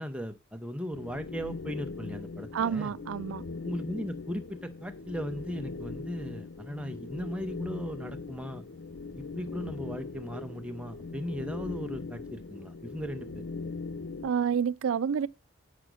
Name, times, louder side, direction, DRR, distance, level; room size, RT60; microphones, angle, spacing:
voice 1, 0.0-2.9 3.6-8.6 9.2-13.4, equal, 5° right, 0.7 m, -37 dB
sound 1, 0.9-14.3, left 4 dB, 75° left, 0.6 m, -40 dB
voice 2, 2.5-3.4 14.2-15.3, right 7 dB, 85° right, 0.4 m, -28 dB
9.4 x 5.0 x 6.2 m
head